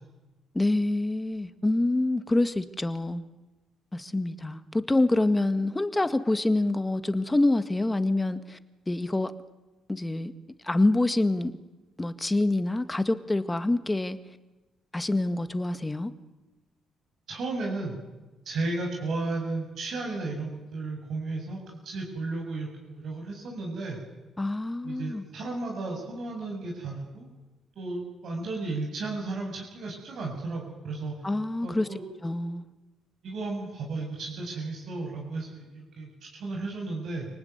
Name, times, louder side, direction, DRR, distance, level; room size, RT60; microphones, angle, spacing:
voice 1, 0.5-3.2 3.9-8.6 8.9-9.3 9.9-10.3 10.6-11.5 12.0-14.2 14.9-16.1 24.4-25.2 31.2-31.9 32.2-32.6, left 2 dB, 15° left, 11 dB, 1.9 m, -26 dB
voice 2, 17.3-18.0 18.5-24.0 24.8-27.3 27.8-31.2 31.6-32.0 33.2-37.3, right 3 dB, 65° right, -1 dB, 7.3 m, -34 dB
28.5 x 19.0 x 9.6 m, 1.1 s
cardioid pair, 90°, 0 cm